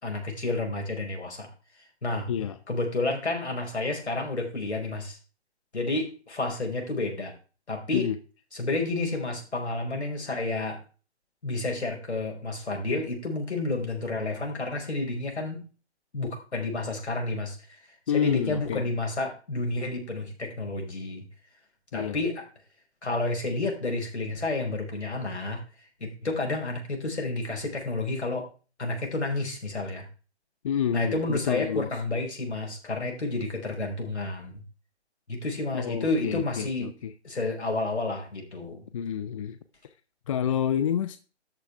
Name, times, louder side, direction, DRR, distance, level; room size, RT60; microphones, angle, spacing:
voice 1, 0.0-1.5 2.0-2.3 2.7-5.2 5.7-7.3 7.7-8.1 8.5-10.8 11.4-15.7 16.1-17.6 18.1-21.3 21.9-22.4 23.0-25.6 26.0-28.5 28.8-30.1 30.9-34.6 35.3-36.9 37.2-38.9, left 2 dB, 75° left, 2 dB, 5.3 m, -30 dB
voice 2, 2.3-2.6 7.9-8.2 18.1-18.8 21.9-22.2 30.6-31.9 35.7-37.1 38.9-39.6 40.3-41.2, left 9 dB, 30° left, 11 dB, 0.6 m, -28 dB
13.0 x 9.5 x 3.5 m, 0.35 s
figure-of-eight pair, 140°, 34 cm